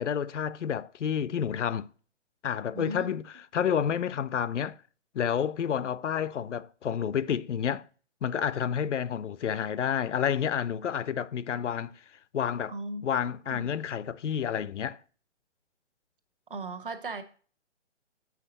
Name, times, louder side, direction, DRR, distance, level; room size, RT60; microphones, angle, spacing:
voice 1, 0.0-1.9 2.4-4.8 5.1-7.8 8.2-11.9 12.3-12.7 13.0-15.0, left 8 dB, 75° left, 0.6 m, -29 dB
voice 2, 2.7-3.1 12.7-13.0 13.5-13.7 16.5-17.2, right 3 dB, 45° right, 1.1 m, -37 dB
7.7 x 5.8 x 4.0 m
hypercardioid pair, 175°, 36 cm